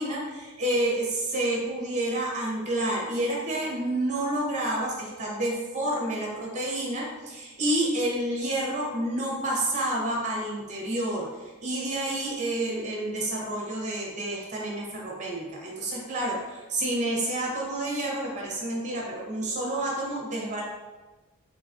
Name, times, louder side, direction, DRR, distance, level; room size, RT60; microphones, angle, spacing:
voice 1, 0.0-20.6, right 1 dB, 35° right, -3 dB, 1.0 m, -29 dB
3.9 x 3.4 x 2.6 m, 1.2 s
head